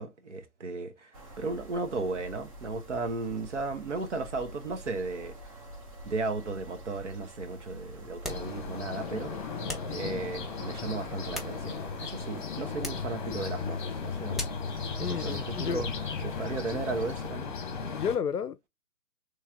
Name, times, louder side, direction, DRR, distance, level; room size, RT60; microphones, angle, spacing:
voice 1, 0.0-5.3 6.0-9.3 9.8-14.4 15.0-15.9 16.2-17.6, right 3 dB, 50° right, 1.1 m, -35 dB
sound 1, 1.1-17.3, right 1 dB, 25° right, 0.7 m, -47 dB
sound 2, 8.2-8.6 9.7-10.0 11.1-12.0 12.8-13.1 14.3-14.7, left 2 dB, ahead, 0.3 m, -39 dB
sound 3, 8.3-18.2, left 5 dB, 30° left, 0.9 m, -36 dB
voice 2, 15.0-15.8 17.9-18.7, left 7 dB, 85° left, 0.6 m, -31 dB
4.1 x 3.3 x 3.6 m
figure-of-eight pair, 135°, 45 cm